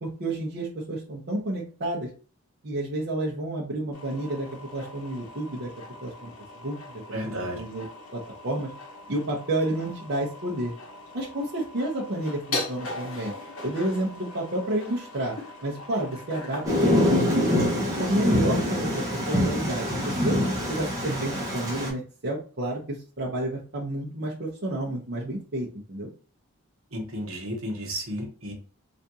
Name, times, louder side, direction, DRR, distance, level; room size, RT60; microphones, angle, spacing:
voice 1, 0.0-2.1 2.6-5.7 6.0-6.3 6.6-7.0 7.3-7.9 8.1-8.7 9.1-10.7 11.1-13.3 13.6-15.4 15.6-17.1 17.3-20.4 20.7-26.1, right 1 dB, 50° right, -5 dB, 0.7 m, -30 dB
sound 1, 3.9-17.2, left 2 dB, 70° left, 0.9 m, -40 dB
voice 2, 7.1-7.6 26.9-28.5, equal, 65° right, 1 dB, 1.0 m, -32 dB
Thunder, 16.7-21.9, left 1 dB, 15° right, 0.8 m, -24 dB
3.5 x 2.5 x 2.7 m, 0.38 s
head